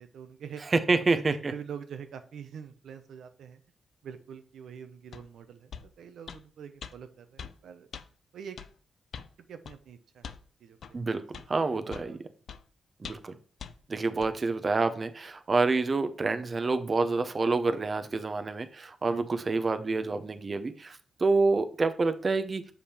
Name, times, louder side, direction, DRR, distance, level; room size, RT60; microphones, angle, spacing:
voice 1, 0.0-0.6 1.1-3.6 4.0-5.7 6.0-7.9 8.3-8.6 9.5-10.3 10.6-11.3 11.9-12.2, right 7 dB, 85° right, 8 dB, 0.9 m, -45 dB
voice 2, 0.7-1.5 10.9-11.2 11.5-12.2 13.0-13.3 13.9-22.7, right 3 dB, 35° right, 9 dB, 0.7 m, -27 dB
sound 1, 5.1-5.3 5.7-5.9 6.3-6.4 6.8-6.9 7.4-7.6 7.9-8.1 8.6-8.7 9.1-9.3 9.7-9.8 10.2-10.4 10.8-10.9 11.3-11.5 11.9-12.1 12.5-12.6 13.0-13.3 13.6-13.7 14.2-14.3, left 7 dB, 75° left, 0.5 m, -42 dB
7.2 x 5.2 x 4.4 m, 0.41 s
cardioid pair, 95°, 0 cm